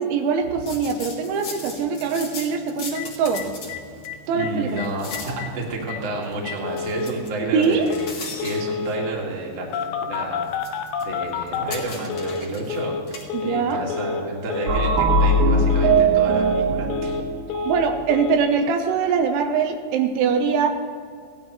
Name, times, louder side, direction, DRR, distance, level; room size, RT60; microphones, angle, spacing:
voice 1, 0.0-3.5 4.3-4.9 7.5-7.9 13.3-13.8 17.6-20.7, right 6 dB, 90° right, 5 dB, 3.2 m, -22 dB
sound 1, 0.6-13.5, left 3 dB, 45° left, 2.6 m, -40 dB
Telephone, 3.0-3.1 3.3-3.4 3.7-3.8 4.1-4.5 4.8-4.9 5.1-5.5 5.9-6.0 6.5-7.1 7.9-8.1 8.4-9.1 9.7-12.4 12.7-13.0 13.3-13.6 13.9-14.2 14.5-14.8 15.1-15.4 15.7-16.0 16.3-17.2 17.5-17.8 18.1-18.4, left 6 dB, 85° left, 3.1 m, -29 dB
voice 2, 4.3-7.9 8.3-10.5 11.0-13.0 13.4-17.2, right 2 dB, 45° right, -2 dB, 2.1 m, -30 dB
sound 2, 14.7-18.3, right 2 dB, 70° right, 3.1 m, -20 dB
17.0 x 12.0 x 3.1 m, 2.1 s
omnidirectional pair, 5.4 m